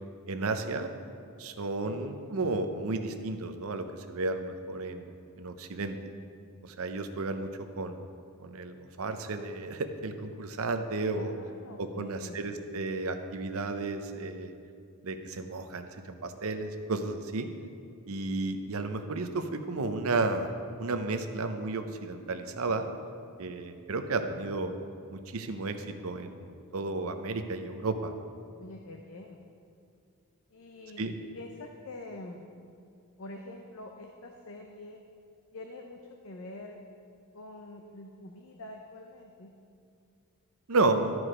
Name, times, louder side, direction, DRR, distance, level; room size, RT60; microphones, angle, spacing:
voice 1, 0.3-0.9 1.4-5.1 5.4-6.0 6.6-7.5 7.8-8.1 8.4-11.3 11.8-14.5 15.0-17.5 18.1-20.5 20.8-22.9 23.4-24.7 25.1-28.1 31.0-31.1 40.7-41.2, right 3 dB, 70° right, 8 dB, 0.6 m, -32 dB
voice 2, 11.1-12.6 28.6-29.4 30.5-32.5 33.2-35.0 35.5-36.8 37.3-39.5, left 2 dB, 65° left, 3 dB, 0.6 m, -46 dB
13.0 x 4.7 x 4.9 m, 2.4 s
head